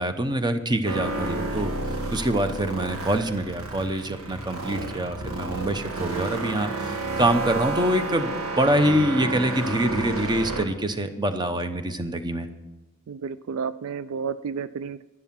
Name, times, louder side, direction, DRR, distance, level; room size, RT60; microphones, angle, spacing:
voice 1, 0.0-12.5, right 1 dB, 20° right, 9 dB, 0.8 m, -25 dB
sound 1, 0.8-10.6, right 3 dB, 80° right, 1.9 m, -31 dB
voice 2, 13.1-15.0, right 6 dB, 65° right, 15 dB, 0.3 m, -31 dB
11.0 x 11.0 x 6.0 m, 1.1 s
head